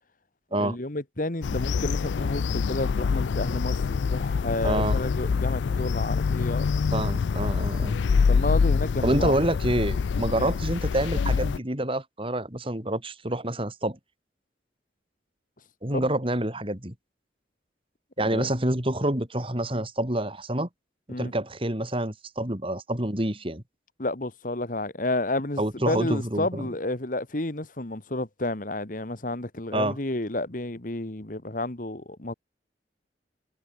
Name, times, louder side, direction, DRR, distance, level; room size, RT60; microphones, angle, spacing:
voice 1, 0.6-6.7 7.4-7.6 8.3-9.4 10.4-10.5 15.9-16.1 18.2-18.5 21.1-21.3 24.0-32.3, left 2 dB, 50° left, 1.8 m, -31 dB
sound 1, 1.4-11.6, left 5 dB, 90° left, 0.4 m, -25 dB
voice 2, 4.6-5.0 6.9-8.0 9.0-14.0 15.8-16.9 18.2-20.7 21.2-23.6 25.6-26.7 29.7-30.0, right 1 dB, 30° right, 3.2 m, -27 dB
head